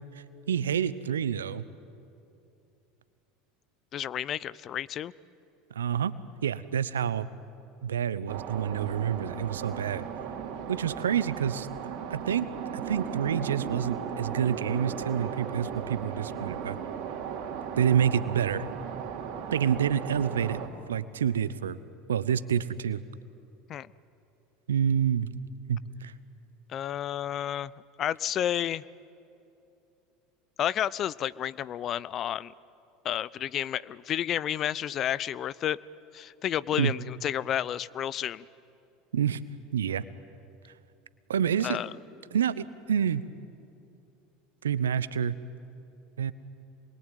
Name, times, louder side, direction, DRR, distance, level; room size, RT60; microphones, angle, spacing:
voice 1, 0.0-1.6 5.7-6.1 6.4-7.3 7.8-10.0 10.7-11.7 12.1-16.8 17.8-18.6 19.5-20.6 20.9-21.8 22.1-23.0 24.7-25.3 25.7-26.1 36.8-36.9 39.1-39.4 39.7-40.0 41.3-41.8 42.3-43.2 44.6-45.3 46.2-46.3, right 8 dB, 85° right, 16 dB, 0.8 m, -28 dB
voice 2, 3.9-5.1 23.7-23.9 26.7-27.7 28.0-28.8 30.6-32.5 33.0-35.8 36.1-38.4 41.6-41.9, left 10 dB, 45° left, 20 dB, 0.6 m, -31 dB
sound 1, 8.3-20.7, right 7 dB, 60° right, 2.8 m, -36 dB
27.0 x 22.0 x 9.2 m, 2.7 s
hypercardioid pair, 80°, 0 cm